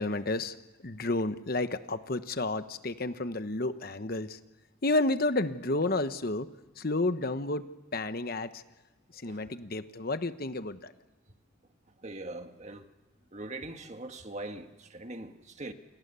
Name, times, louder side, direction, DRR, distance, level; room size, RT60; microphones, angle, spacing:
voice 1, 0.0-4.4 4.8-6.5 6.8-7.6 7.9-8.6 9.1-10.9, left 2 dB, 45° left, 1.0 m, -31 dB
voice 2, 12.0-12.8 13.3-15.7, right 2 dB, 35° right, 1.7 m, -41 dB
29.0 x 27.5 x 6.9 m
head